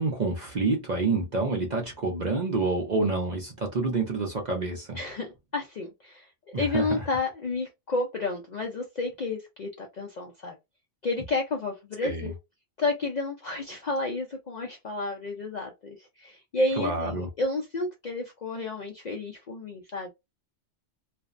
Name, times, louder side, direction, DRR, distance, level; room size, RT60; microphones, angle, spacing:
voice 1, 0.0-5.0 6.5-7.0 12.0-12.3 16.8-17.3, right 3 dB, 50° right, 0.6 m, -28 dB
voice 2, 4.9-10.6 11.0-12.3 12.8-20.1, left 3 dB, 55° left, 0.4 m, -31 dB
2.5 x 2.1 x 2.4 m
omnidirectional pair, 1.3 m